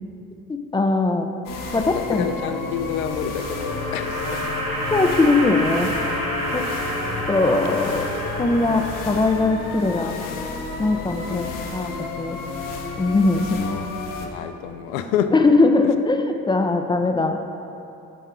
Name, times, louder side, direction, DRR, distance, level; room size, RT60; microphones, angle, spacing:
voice 1, 0.7-1.3 1.7-2.3 4.9-5.9 6.5-6.6 7.3-8.1 8.4-10.1 10.8-12.4 13.0-13.6 15.3-17.4, left 3 dB, 10° left, 6 dB, 0.4 m, -20 dB
sound 1, 1.4-14.3, left 3 dB, 50° left, 0.9 m, -32 dB
voice 2, 1.9-4.6 6.7-6.8 11.2-11.7 13.3-13.9 14.2-15.3 15.8-15.9, left 8 dB, 70° left, 9 dB, 0.5 m, -29 dB
sound 2, 2.9-10.0, equal, 90° right, 0.9 m, -29 dB
10.5 x 5.5 x 3.6 m, 2.7 s
figure-of-eight pair, 45°, 43 cm